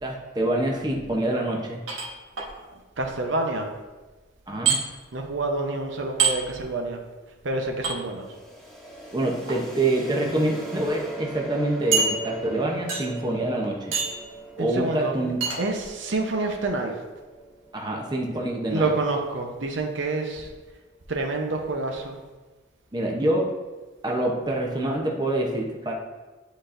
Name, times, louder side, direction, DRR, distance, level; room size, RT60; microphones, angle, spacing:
voice 1, 0.0-1.8 4.5-4.8 9.1-14.0 14.6-15.4 17.7-18.9 22.9-23.6 24.0-25.9, right 1 dB, 20° right, -1 dB, 0.7 m, -26 dB
sound 1, 1.9-2.5 4.7-4.8 6.2-6.4 7.8-8.0 9.3-9.6 10.3-10.4 10.8-10.9 11.9-12.5 12.9-13.2 13.9-14.2 15.4-15.6, right 5 dB, 85° right, 1.3 m, -25 dB
voice 2, 2.7-3.7 5.1-7.0 7.4-8.3 14.6-15.1 15.6-17.0 18.7-20.5 21.1-22.2, right 2 dB, 65° right, 3 dB, 0.7 m, -28 dB
sound 2, 8.2-19.9, right 3 dB, ahead, 1.0 m, -41 dB
10.0 x 4.2 x 2.6 m, 1.2 s
head